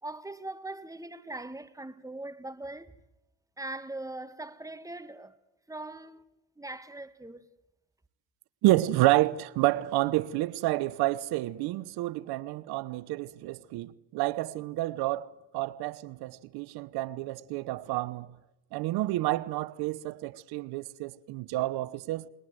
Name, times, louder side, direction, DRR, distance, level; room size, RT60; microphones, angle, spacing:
voice 1, 0.0-2.9 3.6-5.4 5.7-6.2 6.6-7.5, right 2 dB, 10° right, 1.7 m, -41 dB
voice 2, 8.6-18.3 18.7-22.3, right 17 dB, 75° right, 1.1 m, -29 dB
29.5 x 20.5 x 7.8 m
supercardioid pair, 65°, 38 cm